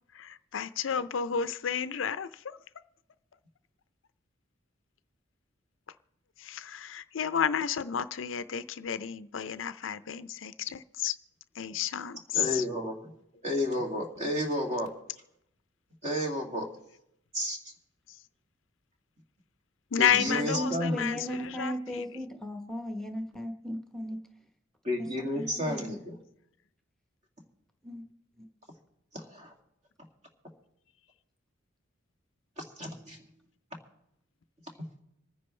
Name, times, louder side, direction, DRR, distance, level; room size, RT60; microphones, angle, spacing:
voice 1, 0.1-2.6 6.4-11.2 11.6-12.7 14.2-14.3 18.1-18.2 19.9-22.1, left 8 dB, 85° left, 14 dB, 0.5 m, -31 dB
voice 2, 12.3-13.0 13.4-14.9 16.0-16.7 17.3-17.6 20.0-21.0 24.8-26.2 29.1-29.5 32.6-33.2, left 1 dB, 35° right, 1 dB, 2.4 m, -31 dB
voice 3, 20.1-24.2 25.0-25.8 27.8-28.1 28.4-28.5, equal, 5° left, 4 dB, 1.0 m, -36 dB
26.5 x 9.7 x 3.2 m, 0.80 s
head